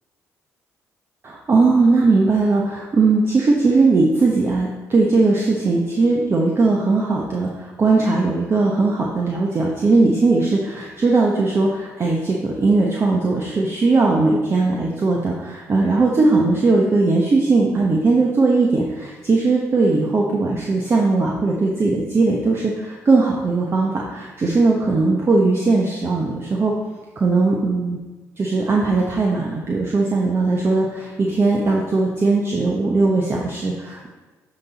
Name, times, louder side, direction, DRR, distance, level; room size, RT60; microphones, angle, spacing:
voice 1, 1.2-26.7 27.2-28.0 28.4-34.1, right 3 dB, 40° right, -1 dB, 1.0 m, -19 dB
8.2 x 4.1 x 4.1 m, 1.2 s
supercardioid pair, 65°, 7 cm